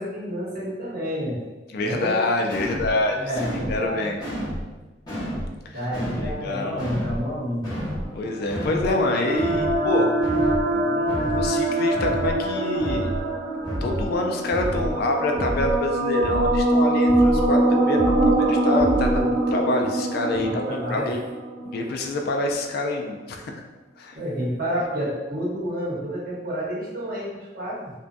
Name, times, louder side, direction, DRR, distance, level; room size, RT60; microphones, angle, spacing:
voice 1, 0.0-1.4 1.8-2.2 3.1-4.1 5.7-7.6 19.2-19.3 20.3-21.1 24.1-27.9, equal, 55° right, -6 dB, 0.9 m, -29 dB
voice 2, 1.7-4.2 5.7-5.8 6.2-6.8 8.1-10.1 10.7-13.1 13.8-21.2 21.6-23.6 24.0-24.2, left 2 dB, 55° left, 2 dB, 0.3 m, -26 dB
sound 1, 2.5-2.9 3.3-3.8 4.2-4.6 5.1-5.5 5.9-6.3 6.8-7.2 7.6-8.1 8.5-8.9 9.3-9.8 10.2-10.6 11.1-11.5 11.9-12.3 12.8-13.2 13.6-14.1 14.5-14.9 15.3-15.8 16.2-16.6 17.1-17.5 17.9-18.4 18.8-19.3, equal, 20° left, 0.9 m, -29 dB
sound 2, 8.0-22.2, right 2 dB, 85° right, 0.5 m, -23 dB
2.6 x 2.2 x 2.4 m, 1.2 s
head